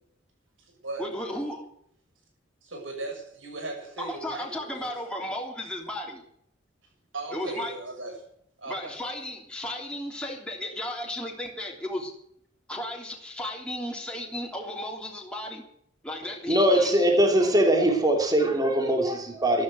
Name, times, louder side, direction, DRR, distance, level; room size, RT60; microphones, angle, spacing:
voice 1, 1.0-1.6 4.0-6.2 7.3-7.7 8.7-12.1 12.7-15.6 16.0-17.0, left 1 dB, 5° left, -1 dB, 3.2 m, -34 dB
voice 2, 2.6-4.9 7.1-8.2 8.6-8.9, right 2 dB, 80° right, 2 dB, 6.9 m, -37 dB
voice 3, 16.5-19.6, right 1 dB, 20° right, 2 dB, 3.1 m, -21 dB
13.0 x 12.5 x 7.7 m, 0.68 s
head